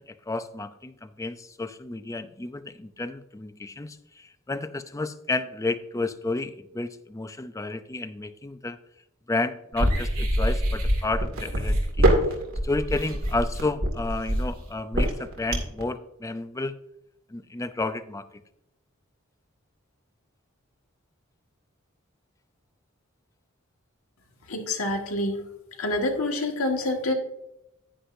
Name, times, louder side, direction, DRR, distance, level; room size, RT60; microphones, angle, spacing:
voice 1, 0.0-8.8 9.3-12.1 12.6-16.7 17.3-18.3, left 2 dB, 15° left, 11 dB, 0.5 m, -31 dB
sound 1, 9.7-15.8, right 1 dB, 85° right, 2.2 m, -24 dB
voice 2, 24.5-25.4 25.8-27.1, left 2 dB, 85° left, 2 dB, 1.7 m, -27 dB
10.0 x 9.9 x 2.7 m, 0.81 s
head